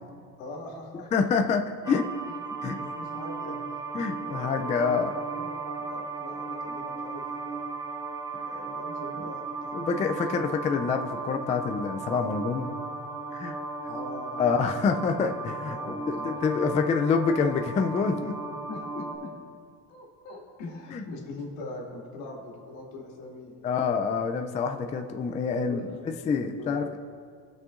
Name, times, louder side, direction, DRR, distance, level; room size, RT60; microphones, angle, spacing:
voice 1, 0.4-1.3 2.5-3.8 4.2-7.7 8.4-10.3 13.9-14.7 15.4-16.4 16.7-16.8 18.7-19.3 19.9-23.9 25.7-26.0 26.6-26.7, left 2 dB, 80° left, -2 dB, 2.2 m, -42 dB
voice 2, 1.1-2.1 2.6-2.8 3.9-5.1 9.7-12.7 13.3-13.6 14.4-15.8 16.1-18.4 20.9-21.0 23.6-27.0, left 5 dB, 20° left, 5 dB, 0.3 m, -27 dB
sound 1, 1.8-19.1, right 3 dB, 10° right, 0.8 m, -36 dB
19.0 x 6.3 x 2.5 m, 2.2 s
supercardioid pair, 105°, 43 cm